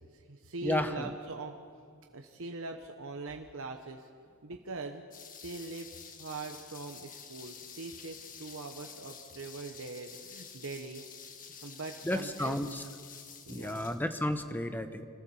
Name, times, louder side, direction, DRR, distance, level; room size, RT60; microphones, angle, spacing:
voice 1, 0.0-1.5 1.9-4.1 4.4-5.0 5.3-11.0 11.5-12.6 13.4-13.9, right 3 dB, 65° right, 4 dB, 1.1 m, -42 dB
voice 2, 0.6-1.1 12.0-12.8 13.5-15.1, left 1 dB, 10° left, 8 dB, 0.9 m, -32 dB
sound 1, 5.1-14.2, left 7 dB, 40° left, 1.6 m, -49 dB
25.5 x 14.5 x 7.1 m, 2.2 s
head